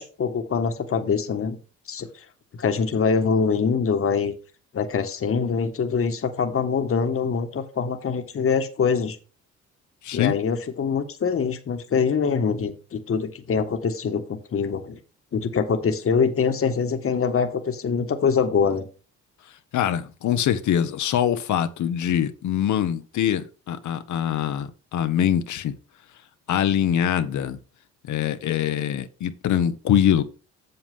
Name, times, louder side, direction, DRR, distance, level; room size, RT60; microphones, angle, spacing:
voice 1, 0.0-1.6 1.9-2.1 2.5-4.3 4.7-9.2 10.1-15.0 15.3-18.9, left 6 dB, 45° left, 1.5 m, -24 dB
voice 2, 10.0-10.4 19.7-25.7 26.5-27.6 28.1-30.2, left 10 dB, 75° left, 1.0 m, -23 dB
8.1 x 7.1 x 3.6 m
cardioid pair, 90°, 30 cm